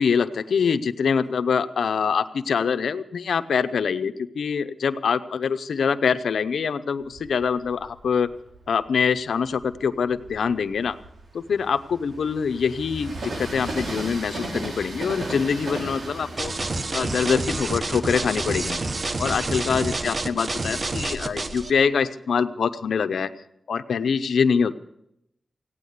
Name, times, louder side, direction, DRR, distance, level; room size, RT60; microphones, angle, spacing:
voice 1, 0.0-8.3 8.7-11.0 11.3-16.5 16.9-18.8 19.2-23.3 23.7-24.7, left 6 dB, 90° left, 10 dB, 0.7 m, -24 dB
Train, 7.1-8.7 9.3-19.9, right 2 dB, 70° right, 3.4 m, -37 dB
sound 1, 16.4-21.7, right 2 dB, 45° right, 1.2 m, -28 dB
17.0 x 9.3 x 8.1 m, 0.80 s
cardioid pair, 60°, 0 cm